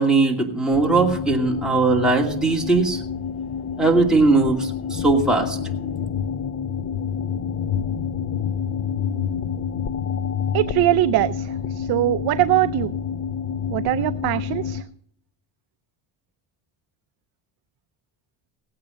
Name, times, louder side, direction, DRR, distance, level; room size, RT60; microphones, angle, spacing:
voice 1, 0.0-3.0 3.8-5.6, right 3 dB, ahead, -2 dB, 2.6 m, -19 dB
sound 1, 0.7-14.8, left 7 dB, 35° left, 0.6 m, -28 dB
voice 2, 10.5-12.9 13.7-14.8, right 15 dB, 50° right, 12 dB, 0.5 m, -22 dB
17.5 x 8.8 x 5.2 m, 0.66 s
cardioid pair, 125°, 49 cm